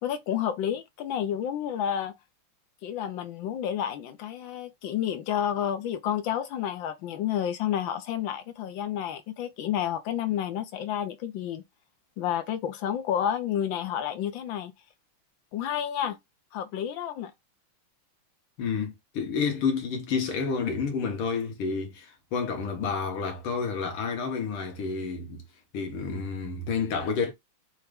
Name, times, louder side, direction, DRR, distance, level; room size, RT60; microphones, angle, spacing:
voice 1, 0.0-2.2 2.8-11.6 12.2-14.7 15.5-16.2 16.5-17.3, left 10 dB, 70° left, 1.3 m, -30 dB
voice 2, 18.6-25.4 25.7-27.3, left 5 dB, 90° left, 2.1 m, -30 dB
5.7 x 2.6 x 3.5 m
omnidirectional pair, 2.3 m